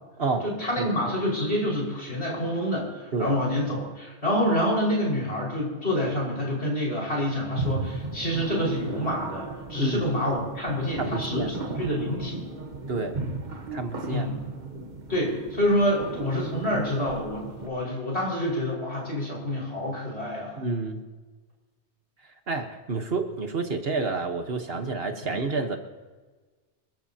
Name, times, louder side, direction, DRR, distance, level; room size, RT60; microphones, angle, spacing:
voice 1, 0.4-12.4 14.1-14.3 15.1-20.6 25.3-25.4, equal, 65° left, -4 dB, 5.7 m, -27 dB
sound 1, 7.6-17.7, right 3 dB, 40° right, 1.3 m, -36 dB
voice 2, 9.8-10.1 11.0-11.6 12.9-13.1 13.7-14.3 20.6-21.0 22.5-25.8, right 3 dB, 55° right, 6 dB, 1.5 m, -29 dB
27.0 x 14.0 x 2.9 m, 1.3 s
omnidirectional pair, 1.2 m